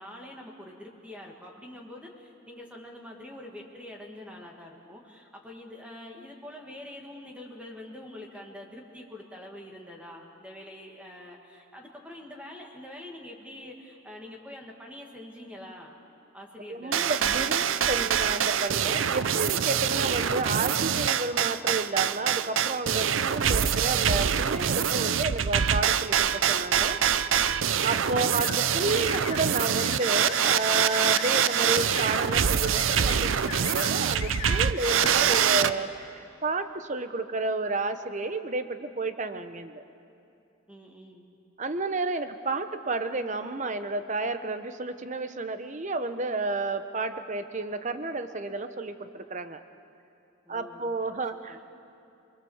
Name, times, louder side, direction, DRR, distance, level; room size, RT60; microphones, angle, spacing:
voice 1, 0.0-16.0 16.3-17.9 40.7-41.2 50.5-50.9 51.5-51.6, left 1 dB, 5° right, 0 dB, 1.9 m, -45 dB
voice 2, 16.7-27.0 27.8-39.8 41.6-49.6 50.5-51.6, right 3 dB, 40° right, 10 dB, 1.0 m, -31 dB
sound 1, 16.9-35.7, right 8 dB, 80° right, 0.6 m, -25 dB
sound 2, 27.3-27.6 28.4-28.6 28.9-29.4 29.7-30.0 30.3-30.6 30.9-31.3 31.7-32.1 32.6-33.2 33.5-33.9 34.2-35.2, left 6 dB, 35° left, 3.8 m, -39 dB
27.0 x 22.0 x 7.2 m, 2.6 s
head